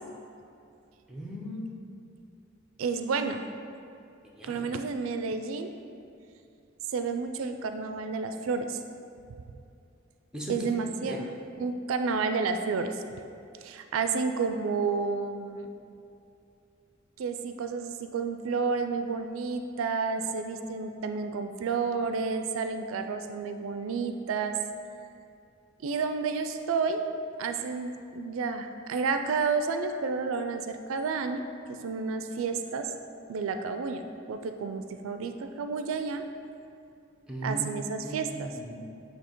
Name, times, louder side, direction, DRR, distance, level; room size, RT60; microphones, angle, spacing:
voice 1, 1.1-1.7 4.4-4.6 10.3-10.7 11.1-11.3 37.3-37.7 38.0-38.8, right 1 dB, 5° right, -3 dB, 0.7 m, -37 dB
voice 2, 2.8-3.5 4.4-5.7 6.9-8.8 10.5-11.3 11.6-13.0 13.6-15.7 17.2-24.6 25.8-27.0 27.4-32.9 33.3-36.3 37.4-38.5, right 4 dB, 85° right, 7 dB, 0.4 m, -31 dB
8.3 x 2.8 x 4.5 m, 2.6 s
head